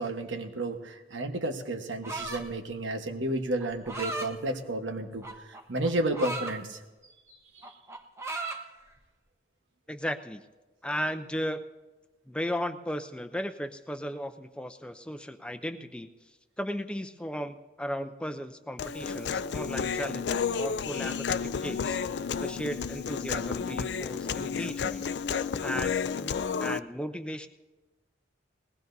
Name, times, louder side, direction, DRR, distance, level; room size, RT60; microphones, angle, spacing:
voice 1, 0.0-6.8, right 1 dB, 85° right, 5 dB, 1.3 m, -32 dB
sound 1, 2.0-2.6 3.6-4.3 5.2-6.6 7.0-7.3 7.6-8.6, right 2 dB, 15° right, 0.8 m, -36 dB
voice 2, 9.9-10.4 10.8-11.7 12.3-16.1 16.6-22.0 22.4-25.1 25.6-26.3 26.6-27.5, equal, 5° left, 8 dB, 0.5 m, -35 dB
Human voice, 18.8-26.8, left 6 dB, 65° left, 0.4 m, -31 dB
21.0 x 18.5 x 2.7 m, 1.2 s
head